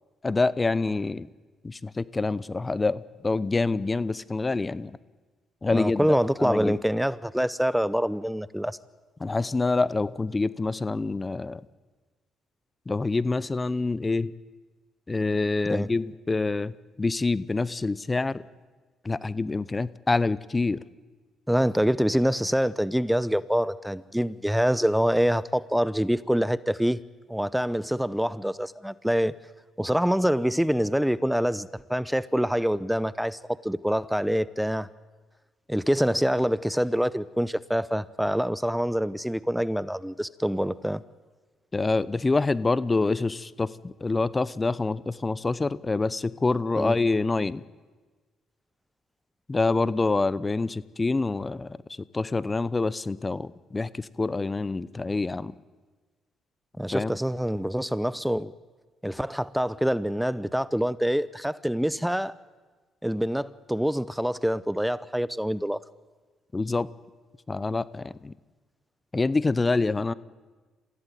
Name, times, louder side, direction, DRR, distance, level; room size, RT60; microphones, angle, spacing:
voice 1, 0.2-1.3 1.6-4.9 5.6-6.0 6.4-6.8 9.2-11.6 12.9-14.3 15.1-18.4 19.0-20.8 41.7-47.6 49.5-51.8 52.1-55.5 56.9-57.1 66.5-66.9 67.5-68.3 69.1-70.1, left 3 dB, 25° left, 18 dB, 0.8 m, -26 dB
voice 2, 5.7-8.8 15.7-15.9 21.5-27.0 27.3-29.3 29.8-34.9 35.7-41.0 46.8-47.0 56.8-58.5 59.0-62.3 63.0-65.8, equal, 5° right, 18 dB, 0.8 m, -25 dB
26.5 x 16.0 x 9.2 m, 1.3 s
supercardioid pair, 60°, 0 cm